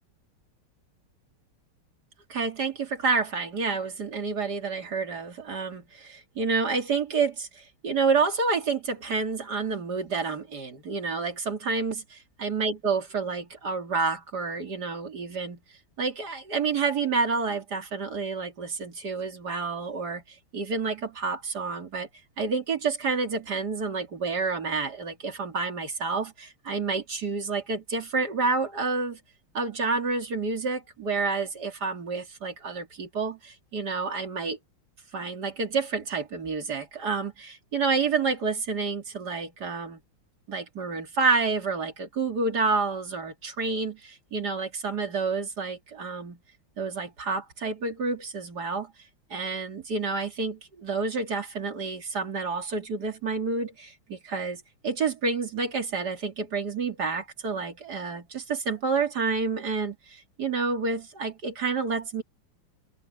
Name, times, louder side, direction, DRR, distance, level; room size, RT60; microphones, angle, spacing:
voice 1, 2.3-15.6 16.0-22.1 22.4-29.2 29.5-34.6 35.1-40.0 40.5-46.4 46.8-48.9 49.3-62.2, right 4 dB, 50° right, 3.1 m, -29 dB
omnidirectional pair, 2.4 m